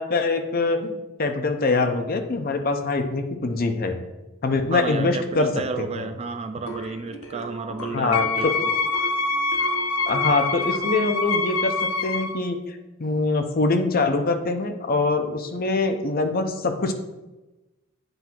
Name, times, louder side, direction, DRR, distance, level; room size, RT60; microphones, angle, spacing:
voice 1, 0.0-4.0 4.4-5.5 5.8-6.1 7.9-8.5 10.1-16.9, left 3 dB, 45° left, 6 dB, 0.7 m, -24 dB
voice 2, 4.7-8.7, right 4 dB, 30° right, 8 dB, 0.4 m, -32 dB
sound 1, 6.7-11.5, right 2 dB, 70° left, 0.9 m, -38 dB
Wind instrument woodwind instrument, 8.1-12.4, left 3 dB, 90° left, 0.6 m, -25 dB
7.9 x 2.8 x 5.9 m, 1.0 s
head